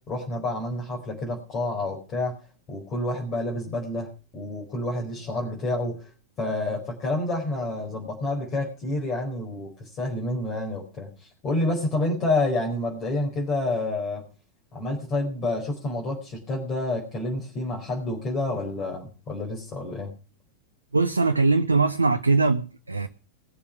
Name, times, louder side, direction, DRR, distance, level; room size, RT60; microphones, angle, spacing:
voice 1, 0.1-2.3 2.7-6.1 6.4-14.2 14.7-20.1, left 2 dB, 30° left, -1 dB, 4.4 m, -29 dB
voice 2, 20.9-23.1, right 3 dB, 80° right, 8 dB, 0.8 m, -21 dB
20.0 x 7.1 x 6.0 m, 0.37 s
figure-of-eight pair, 90°, 0 cm